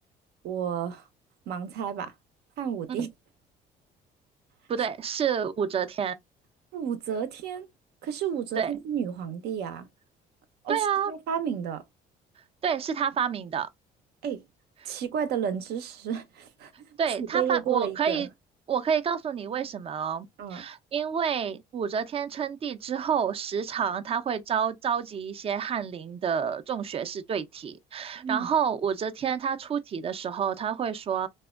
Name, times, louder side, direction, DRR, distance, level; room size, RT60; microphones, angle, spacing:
voice 1, 0.4-1.0 1.5-2.1 2.6-3.1 6.7-7.7 8.0-9.9 10.6-11.8 14.2-14.4 14.8-16.7 17.2-18.3 20.4-20.6 28.2-28.5, right 8 dB, 75° right, 0.6 m, -31 dB
voice 2, 4.7-6.2 8.6-8.7 10.7-11.1 12.6-13.7 14.8-14.9 17.0-18.3 18.7-20.3 20.5-31.3, right 7 dB, 35° right, 0.4 m, -29 dB
3.4 x 2.1 x 2.3 m
cardioid pair, 110°, 17 cm